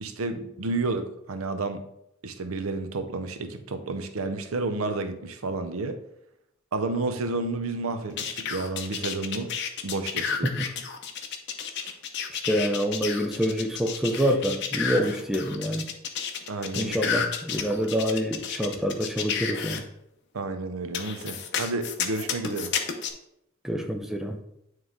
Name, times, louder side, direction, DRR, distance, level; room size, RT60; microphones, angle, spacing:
voice 1, 0.0-1.8 2.2-6.0 6.7-9.5 9.8-10.5 11.8-11.9 16.5-17.1 20.3-22.7, right 3 dB, 80° right, 0.6 m, -31 dB
sound 1, 8.2-19.8 20.9-23.1, left 7 dB, 55° left, 0.6 m, -31 dB
voice 2, 12.3-15.9 16.8-19.8 23.6-24.4, equal, ahead, 0.4 m, -27 dB
9.3 x 3.2 x 3.6 m
head